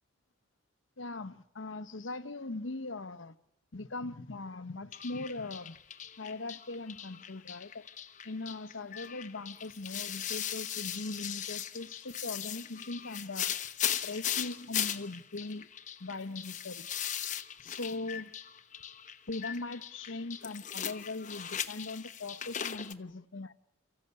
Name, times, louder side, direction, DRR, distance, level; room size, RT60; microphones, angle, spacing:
voice 1, 1.0-3.3 3.7-5.8 6.2-7.8 8.2-13.5 14.0-15.7 16.0-16.9 17.6-18.3 19.3-23.5, left 2 dB, 70° left, 0.9 m, -40 dB
sound 1, 4.9-22.9, left 10 dB, 35° left, 1.0 m, -38 dB
29.5 x 14.5 x 9.7 m
head